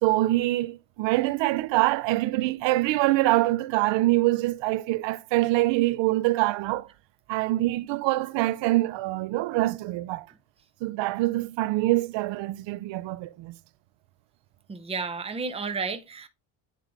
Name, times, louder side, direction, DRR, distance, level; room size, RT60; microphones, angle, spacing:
voice 1, 0.0-6.9 7.3-10.3 10.8-13.6, right 18 dB, 65° right, 0.5 m, -25 dB
voice 2, 14.7-16.3, right 4 dB, 15° right, 0.6 m, -32 dB
9.1 x 3.7 x 3.3 m
cardioid pair, 140°, 47 cm